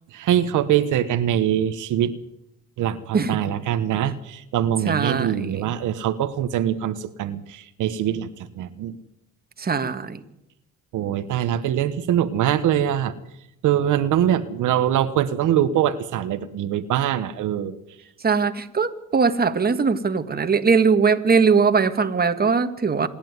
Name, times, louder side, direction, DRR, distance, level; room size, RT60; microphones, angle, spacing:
voice 1, 0.1-2.1 2.8-8.3 8.6-9.0 10.9-13.1 13.6-17.8, right 10 dB, 85° right, 10 dB, 1.2 m, -23 dB
voice 2, 4.9-5.8 9.6-10.2 18.2-23.1, right 5 dB, 30° right, 8 dB, 1.6 m, -20 dB
26.5 x 10.5 x 9.4 m, 0.85 s
cardioid pair, 90°, 30 cm